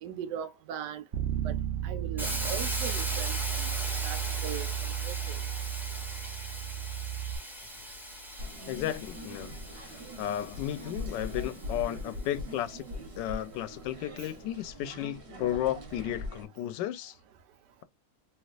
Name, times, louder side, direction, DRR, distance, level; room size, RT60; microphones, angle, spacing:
voice 1, 0.0-1.0 1.3-1.5 1.8-3.8 4.0-4.7 5.0-5.4 14.2-14.3, right 9 dB, 75° right, 1.2 m, -39 dB
Bass guitar, 1.1-7.4, right 11 dB, 60° right, 0.6 m, -34 dB
Hiss, 2.2-12.1, equal, ahead, 1.0 m, -39 dB
sound 1, 8.4-16.4, left 1 dB, 45° right, 1.2 m, -41 dB
voice 2, 8.7-12.8 13.2-17.2, left 12 dB, 90° left, 1.2 m, -34 dB
3.3 x 2.9 x 2.4 m
omnidirectional pair, 1.9 m